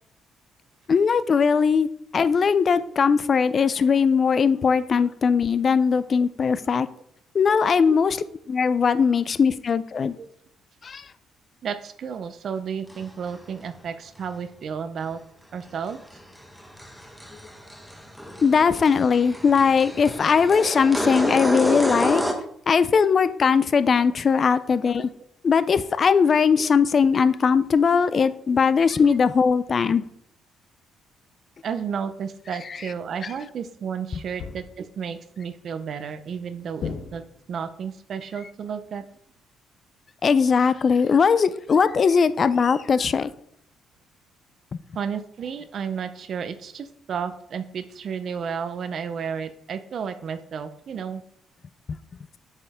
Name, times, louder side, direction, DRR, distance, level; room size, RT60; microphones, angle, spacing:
voice 1, 0.9-1.9 2.1-6.9 7.3-8.2 8.5-10.2 10.8-11.0 18.4-22.2 22.7-25.1 25.4-30.0 40.2-43.3 51.9-52.0, left 6 dB, 40° left, 15 dB, 0.4 m, -20 dB
voice 2, 11.6-15.2 15.5-16.0 25.0-25.1 31.6-37.2 37.5-39.0 44.9-51.2, right 7 dB, 50° right, 11 dB, 0.6 m, -32 dB
sound 1, 12.9-13.0 13.3-13.4 15.9-22.3, equal, ahead, 1.0 m, -29 dB
sound 2, 34.4-35.0 36.8-37.6, left 5 dB, 60° left, 0.8 m, -36 dB
8.2 x 5.4 x 3.5 m, 0.69 s
cardioid pair, 115°, 0 cm